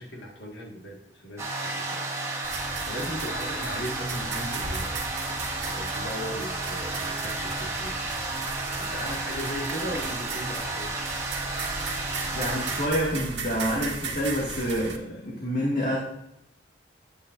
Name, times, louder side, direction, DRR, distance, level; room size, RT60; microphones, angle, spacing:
voice 1, 0.0-2.0 2.5-5.0 5.7-8.0 8.8-10.9, equal, 75° left, 0 dB, 1.7 m, -37 dB
sound 1, 1.4-12.9, right 2 dB, 15° right, 1.6 m, -32 dB
sound 2, 2.4-15.0, right 4 dB, 80° right, 1.5 m, -37 dB
voice 2, 12.3-16.0, equal, 45° left, -4 dB, 2.0 m, -27 dB
12.0 x 8.5 x 2.5 m, 0.83 s
head